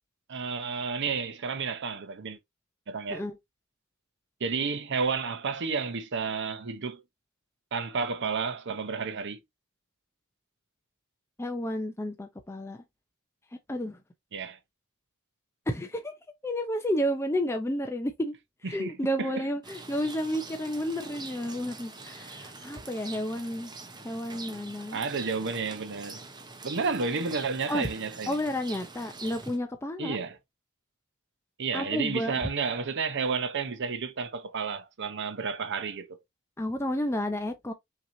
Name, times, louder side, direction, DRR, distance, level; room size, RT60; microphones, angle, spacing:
voice 1, 0.3-2.4 2.9-3.2 4.4-7.0 7.7-9.4 14.3-14.6 18.6-18.9 19.2-19.4 24.9-26.2 26.6-28.4 30.0-30.4 31.6-36.2, right 5 dB, 55° right, 0.7 m, -31 dB
voice 2, 11.4-12.8 13.7-14.0 15.7-16.1 16.4-18.4 18.6-23.7 24.0-25.0 27.7-27.9 28.3-30.2 31.7-32.4 36.6-37.7, equal, 10° left, 0.5 m, -31 dB
Rain, 19.6-29.6, right 3 dB, 20° right, 0.8 m, -44 dB
5.8 x 2.9 x 2.6 m
head